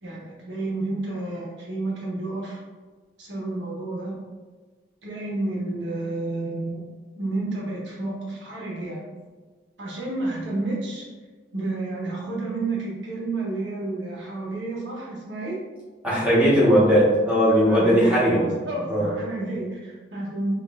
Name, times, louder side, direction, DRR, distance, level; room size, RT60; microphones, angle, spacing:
voice 1, 0.0-2.6 3.2-4.1 5.0-6.9 7.2-9.1 9.8-11.0 11.5-15.6 16.1-16.3 17.6-20.5, right 2 dB, 80° right, -4 dB, 1.1 m, -30 dB
voice 2, 16.0-18.4 18.9-19.1, equal, 5° right, -9 dB, 1.1 m, -18 dB
6.2 x 2.5 x 2.4 m, 1.4 s
head